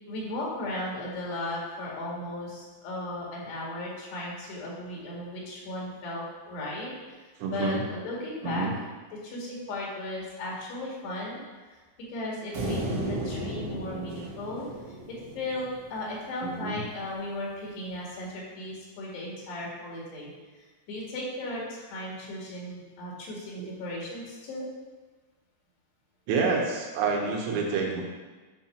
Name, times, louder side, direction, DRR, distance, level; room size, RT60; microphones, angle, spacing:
voice 1, 0.1-8.7 9.2-11.4 11.7-11.8 12.1-20.3 20.6-24.7, left 1 dB, 75° left, -4 dB, 4.1 m, -36 dB
voice 2, 7.4-7.8 8.4-8.7 16.4-16.8 23.6-23.7 26.3-28.0, right 4 dB, 85° right, 0 dB, 3.4 m, -28 dB
sound 1, 12.5-15.9, right 1 dB, 65° right, 1.6 m, -34 dB
9.5 x 5.7 x 4.4 m, 1.3 s
omnidirectional pair, 4.8 m